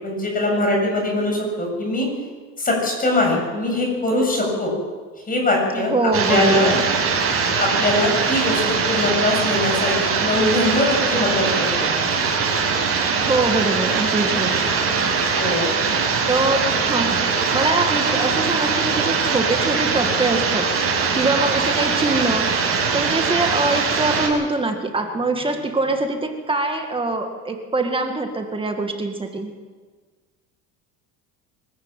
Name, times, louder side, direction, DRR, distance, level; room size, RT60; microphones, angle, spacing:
voice 1, 0.0-2.1 2.6-4.7 5.3-5.9 6.3-6.8 7.6-11.9 15.4-15.7, left 1 dB, 25° left, 0 dB, 7.7 m, -22 dB
voice 2, 5.7-6.8 13.3-14.7 16.3-17.3 17.5-20.7 21.1-22.5 22.9-29.5, right 2 dB, 15° right, 4 dB, 2.0 m, -23 dB
sound 1, 6.1-24.3, right 5 dB, 40° right, 6.6 m, -21 dB
24.0 x 14.5 x 9.0 m, 1.4 s
cardioid pair, 135°, 36 cm